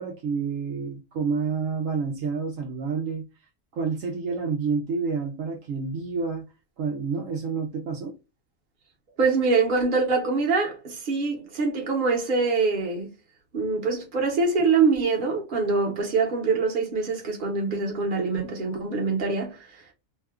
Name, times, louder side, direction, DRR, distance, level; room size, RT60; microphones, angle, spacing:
voice 1, 0.0-3.2 3.7-6.4 6.8-8.2, right 5 dB, 70° right, 1.0 m, -29 dB
voice 2, 9.2-13.1 13.5-19.6, right 4 dB, 40° right, 1.0 m, -24 dB
2.8 x 2.2 x 3.4 m
omnidirectional pair, 1.5 m